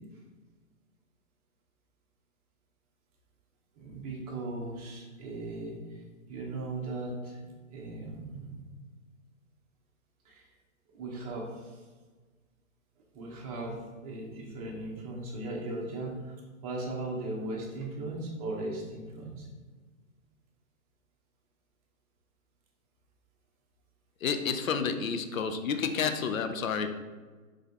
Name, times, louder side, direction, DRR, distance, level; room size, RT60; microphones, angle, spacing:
voice 1, 3.7-7.4 7.7-8.6 10.2-10.4 10.9-11.8 13.1-13.8 14.0-19.5, right 2 dB, 25° right, -2 dB, 0.8 m, -38 dB
voice 2, 24.2-27.0, left 6 dB, 70° left, 8 dB, 0.6 m, -30 dB
3.7 x 3.4 x 3.5 m, 1.4 s
figure-of-eight pair, 125°, 43 cm